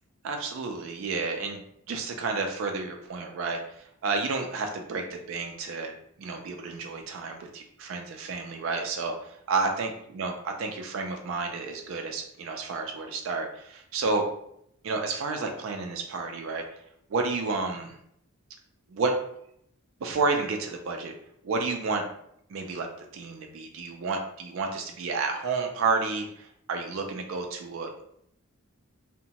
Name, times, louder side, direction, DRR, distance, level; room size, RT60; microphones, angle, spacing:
voice 1, 0.2-5.9 6.2-14.2 14.8-16.8 17.1-18.0 18.9-19.1 20.0-21.1 21.4-22.0 22.5-22.9 23.1-28.0, right 4 dB, 65° right, 3 dB, 0.3 m, -31 dB
2.7 x 2.1 x 2.8 m, 0.72 s
head